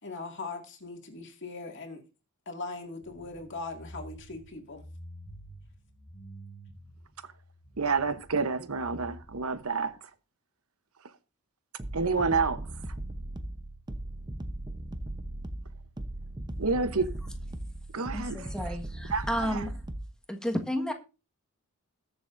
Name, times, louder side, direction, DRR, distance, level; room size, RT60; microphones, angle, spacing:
voice 1, 0.0-2.0 2.5-4.8, left 3 dB, 55° left, 2.1 m, -40 dB
sound 1, 3.0-9.9, equal, 40° left, 1.9 m, -49 dB
voice 2, 7.8-10.1 11.9-12.7 16.6-17.1 17.9-18.4 19.1-19.6, right 4 dB, 70° right, 0.9 m, -29 dB
sound 2, 11.8-20.1, right 1 dB, 20° right, 0.8 m, -38 dB
voice 3, 18.1-19.8 20.3-20.9, equal, 5° left, 1.5 m, -32 dB
21.0 x 7.0 x 2.6 m
head